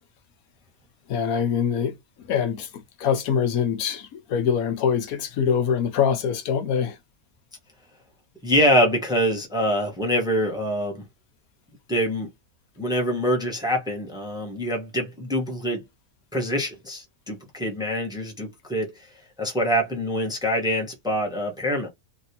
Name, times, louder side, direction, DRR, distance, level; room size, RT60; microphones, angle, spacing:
voice 1, 1.1-1.9 2.3-7.0, left 7 dB, 80° left, 1.2 m, -24 dB
voice 2, 8.4-11.0 11.9-12.3 12.8-15.8 16.3-18.9 19.4-21.9, equal, 5° right, 0.9 m, -25 dB
3.3 x 2.6 x 2.7 m
omnidirectional pair, 1.5 m